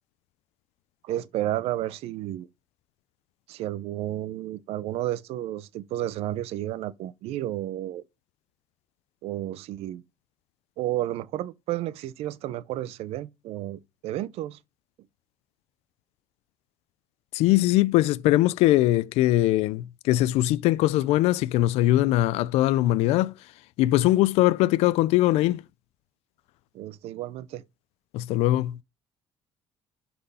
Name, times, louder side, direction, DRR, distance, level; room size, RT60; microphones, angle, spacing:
voice 1, 1.0-2.5 3.5-8.0 9.2-10.0 10.8-14.6 26.7-27.6, right 14 dB, 70° right, 0.6 m, -32 dB
voice 2, 17.3-23.3 23.8-25.6 28.1-28.8, left 15 dB, 80° left, 0.4 m, -21 dB
11.5 x 4.3 x 5.5 m
cardioid pair, 130°, 11 cm